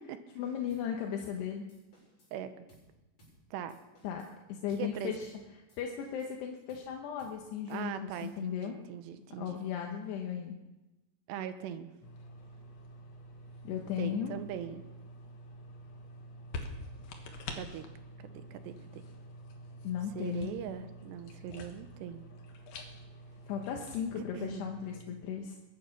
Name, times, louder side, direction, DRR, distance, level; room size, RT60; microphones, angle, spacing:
voice 1, 0.4-1.7 4.0-4.2 4.5-5.3 5.8-8.8 9.4-10.5 13.6-14.3 19.8-20.5 23.5-25.6, left 8 dB, 80° left, 2 dB, 3.2 m, -36 dB
sound 1, 0.7-0.9 1.2-1.4 1.7-2.4 2.7-2.9 3.2-3.4 3.7-4.4 4.7-4.9 5.2-5.4 5.7-6.4 6.7-6.9 7.2-7.4 7.7-8.6, right 1 dB, 35° left, 7.6 m, -62 dB
voice 2, 2.3-2.7 3.5-3.8 4.7-5.1 7.7-9.6 11.3-11.9 14.0-14.8 17.5-17.9 18.2-19.0 20.1-22.2 24.2-24.7, right 9 dB, 80° right, 10 dB, 3.0 m, -41 dB
sound 2, 12.0-25.0, left 1 dB, 60° left, 1.8 m, -47 dB
22.5 x 9.9 x 5.9 m, 1.0 s
omnidirectional pair, 4.9 m